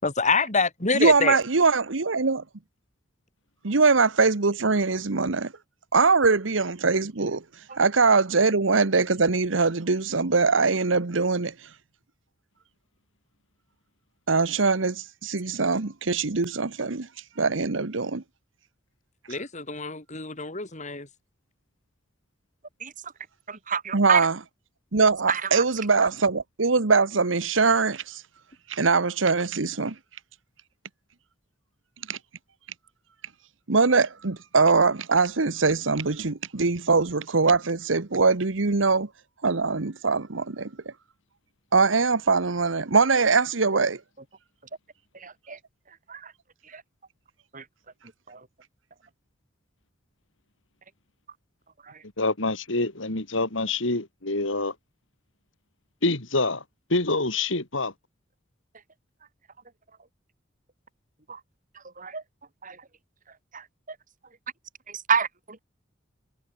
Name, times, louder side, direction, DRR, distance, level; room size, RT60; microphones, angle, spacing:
voice 1, 0.0-1.4 19.3-21.1, left 4 dB, 40° left, 6.2 m, -26 dB
voice 2, 0.9-2.4 3.6-5.5 5.9-7.4 7.8-11.5 14.3-17.1 17.4-18.2 23.9-24.3 24.9-28.2 28.7-29.9 32.1-32.2 33.7-39.1 39.4-40.7 41.7-44.0, right 4 dB, 85° right, 1.2 m, -22 dB
voice 3, 23.5-24.3 25.3-25.6 45.1-45.6 46.1-46.3 46.7-46.8 47.5-47.6 48.3-48.4 51.9-52.0 61.3-61.4 62.0-62.2 62.6-62.8 63.5-63.6 64.9-65.6, right 6 dB, 45° right, 5.8 m, -28 dB
voice 4, 52.2-54.7 56.0-56.6 56.9-57.9, left 2 dB, 90° left, 3.6 m, -26 dB
head